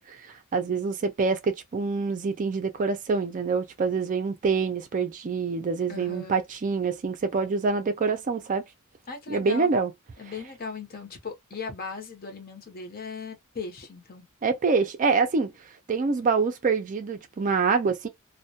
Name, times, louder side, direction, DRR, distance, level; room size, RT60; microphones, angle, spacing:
voice 1, 0.5-8.6 9.3-9.9 14.4-15.5 15.9-18.1, right 4 dB, 35° right, 0.4 m, -26 dB
voice 2, 5.9-6.4 9.1-9.7 10.2-14.3, left 4 dB, 45° left, 0.7 m, -38 dB
2.2 x 2.1 x 2.7 m
head